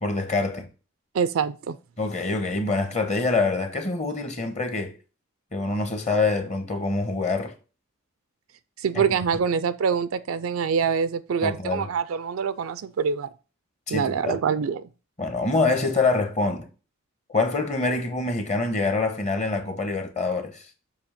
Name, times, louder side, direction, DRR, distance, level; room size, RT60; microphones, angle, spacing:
voice 1, 0.0-0.7 2.0-4.9 5.5-7.5 8.9-9.0 11.4-11.8 13.9-14.4 15.2-16.7 17.3-20.6, left 3 dB, 35° left, 1.1 m, -25 dB
voice 2, 1.1-1.8 8.8-13.3 13.9-14.9, right 6 dB, 70° right, 0.4 m, -25 dB
7.0 x 2.9 x 5.6 m
head